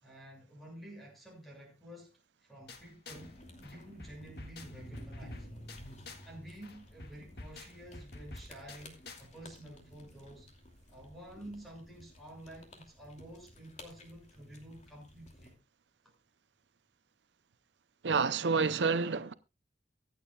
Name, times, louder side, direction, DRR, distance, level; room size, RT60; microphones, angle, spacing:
voice 1, 0.0-2.1 2.4-5.5 6.2-10.5 10.9-15.6, right 1 dB, ahead, 6.6 m, -50 dB
sound 1, 2.7-3.3 3.6-6.3 6.6-9.3, left 2 dB, 65° left, 1.8 m, -49 dB
sound 2, 3.1-15.5, left 1 dB, 40° left, 2.7 m, -53 dB
voice 2, 18.0-19.3, right 5 dB, 80° right, 0.6 m, -28 dB
24.0 x 8.6 x 2.3 m
head